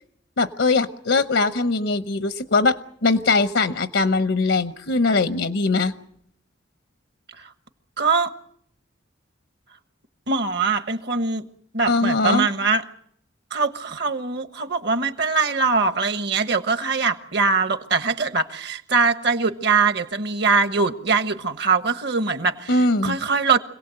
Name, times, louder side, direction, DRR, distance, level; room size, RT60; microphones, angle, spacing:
voice 1, 0.4-5.9 11.9-12.5 22.7-23.2, left 3 dB, 80° left, 0.9 m, -21 dB
voice 2, 8.0-8.3 10.3-11.5 11.7-12.8 13.5-23.6, right 4 dB, 60° right, 1.3 m, -22 dB
26.0 x 18.0 x 7.8 m
head